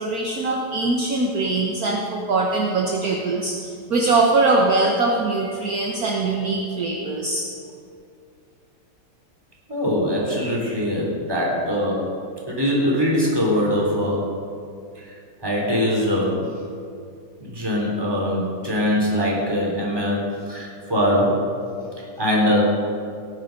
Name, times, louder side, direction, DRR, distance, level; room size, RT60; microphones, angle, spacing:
voice 1, 0.0-7.5, right 3 dB, 55° right, -1 dB, 1.5 m, -22 dB
voice 2, 9.7-12.1 12.5-14.3 15.0-15.1 15.4-16.5 17.4-21.4 22.2-22.8, equal, 10° right, -3 dB, 3.5 m, -22 dB
18.0 x 10.5 x 5.3 m, 2.4 s
omnidirectional pair, 2.0 m